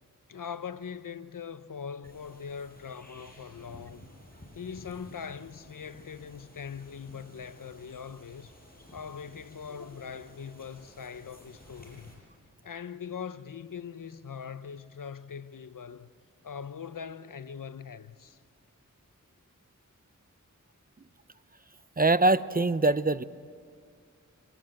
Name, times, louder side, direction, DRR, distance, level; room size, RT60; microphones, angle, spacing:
voice 1, 0.3-4.1 4.5-8.5 8.9-12.2 12.6-16.1 16.4-18.4, left 7 dB, 80° left, 0.7 m, -41 dB
sound 1, 2.0-12.1, left 1 dB, 30° left, 6.8 m, -53 dB
voice 2, 22.0-23.2, right 2 dB, 30° right, 0.6 m, -23 dB
25.5 x 19.0 x 7.7 m
wide cardioid pair, 50°, 32 cm